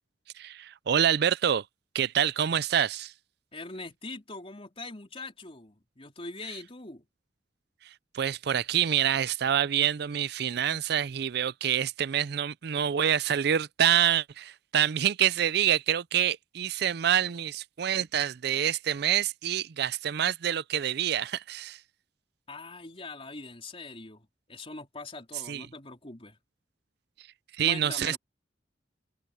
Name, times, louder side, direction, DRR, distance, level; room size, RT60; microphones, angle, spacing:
voice 1, 0.4-1.6 1.9-3.1 8.1-21.8 25.5-25.6 27.6-28.2, right 9 dB, 65° right, 0.4 m, -26 dB
voice 2, 3.5-7.1 22.5-26.4 27.6-28.2, left 3 dB, 35° left, 3.8 m, -42 dB
open air
head